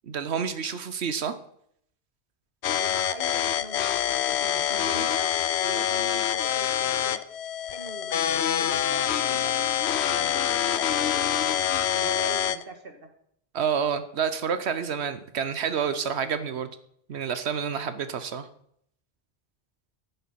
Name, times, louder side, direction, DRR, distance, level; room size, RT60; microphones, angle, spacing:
voice 1, 0.1-1.3 13.5-16.7 17.1-18.4, right 7 dB, 80° right, 11 dB, 1.1 m, -28 dB
sound 1, 2.6-12.6, left 10 dB, 80° left, 0.9 m, -26 dB
voice 2, 2.7-5.3 5.6-7.2 7.7-9.5 9.9-11.6 11.9-13.1, right 2 dB, 60° right, 5 dB, 1.6 m, -41 dB
11.5 x 8.0 x 5.7 m, 0.69 s
omnidirectional pair, 1.1 m